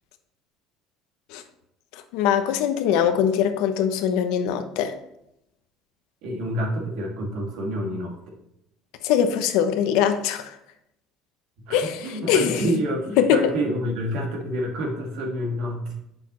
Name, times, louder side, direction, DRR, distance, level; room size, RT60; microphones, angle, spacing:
voice 1, 2.1-4.9 9.0-10.6 11.7-12.6 13.2-13.5, left 8 dB, 80° left, 0.9 m, -22 dB
voice 2, 6.2-8.3 11.7-16.0, equal, 70° right, 2.2 m, -28 dB
8.2 x 6.3 x 3.1 m
cardioid pair, 120°, 0 cm